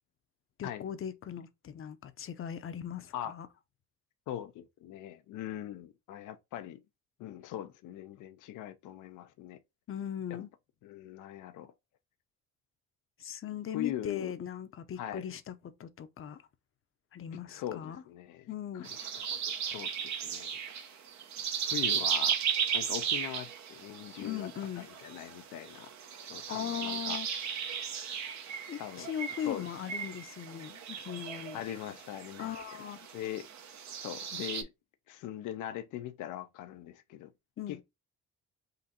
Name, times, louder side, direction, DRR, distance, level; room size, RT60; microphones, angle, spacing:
voice 1, 0.6-3.5 9.9-10.5 13.2-15.5 15.8-16.4 17.1-18.0 18.5-18.9 24.2-24.9 26.5-27.3 28.7-31.6 32.4-33.1 37.6-37.8, left 9 dB, 45° left, 0.7 m, -39 dB
voice 2, 4.3-6.8 7.2-9.6 10.3-10.4 10.8-11.7 13.7-14.3 15.0-15.3 17.3-20.6 21.6-22.4 22.7-24.5 24.8-25.9 26.2-27.4 28.8-29.1 29.4-29.7 31.5-32.6 33.1-33.5 34.0-34.7 35.1-37.3 37.7-37.8, left 12 dB, 90° left, 0.6 m, -41 dB
sound 1, 18.8-34.6, right 8 dB, 65° right, 0.8 m, -36 dB
3.9 x 2.5 x 4.0 m
cardioid pair, 90°, 30 cm